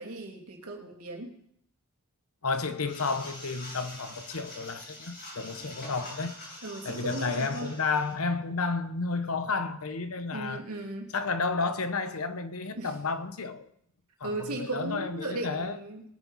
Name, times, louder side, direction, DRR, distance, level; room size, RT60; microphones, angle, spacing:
voice 1, 0.0-1.3 6.6-7.7 10.3-11.1 12.8-12.9 14.2-16.0, right 2 dB, 80° right, 2.8 m, -37 dB
voice 2, 2.4-6.4 6.8-10.6 11.1-13.7 14.2-15.8, left 4 dB, 70° left, 1.0 m, -31 dB
sound 1, 2.9-8.1, left 1 dB, 50° left, 6.3 m, -44 dB
20.5 x 9.3 x 4.2 m
head